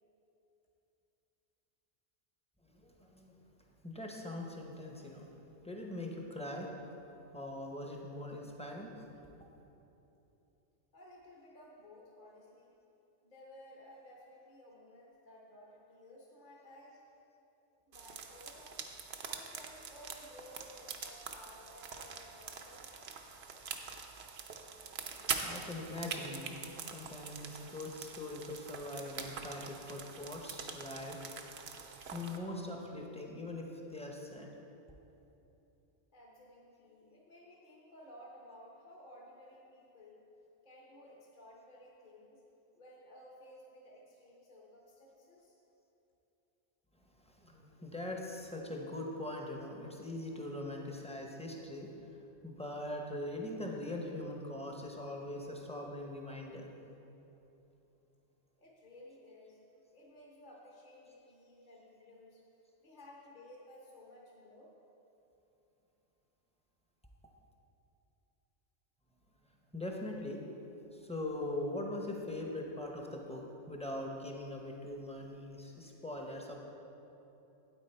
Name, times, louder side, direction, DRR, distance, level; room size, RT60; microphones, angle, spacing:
voice 1, 2.7-3.4 3.8-5.3 5.6-6.7 7.3-8.9 25.1-31.2 32.1-34.5 47.4-51.9 52.4-56.7 69.7-70.4 70.9-76.6, left 1 dB, 5° left, 0 dB, 0.7 m, -42 dB
voice 2, 10.9-12.7 13.2-17.0 17.9-18.8 19.3-22.9 36.1-40.2 40.6-42.4 42.7-45.6 58.6-59.6 59.9-62.4 62.8-64.7, left 1 dB, 45° left, -3 dB, 1.0 m, -56 dB
sound 1, 17.9-32.4, right 6 dB, 65° right, 0.9 m, -44 dB
8.9 x 8.6 x 4.4 m, 3.0 s
omnidirectional pair, 1.2 m